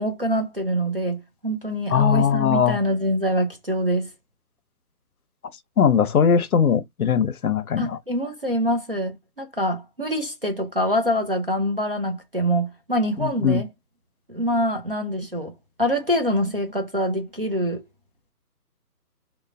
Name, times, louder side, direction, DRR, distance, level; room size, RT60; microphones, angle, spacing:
voice 1, 0.0-4.1 7.8-13.7 14.3-15.5 15.8-17.8, equal, 40° right, 0.5 m, -25 dB
voice 2, 1.9-2.8 5.8-8.0 13.2-13.6, left 7 dB, 65° left, 0.7 m, -20 dB
3.0 x 2.2 x 2.4 m
hypercardioid pair, 170°, 47 cm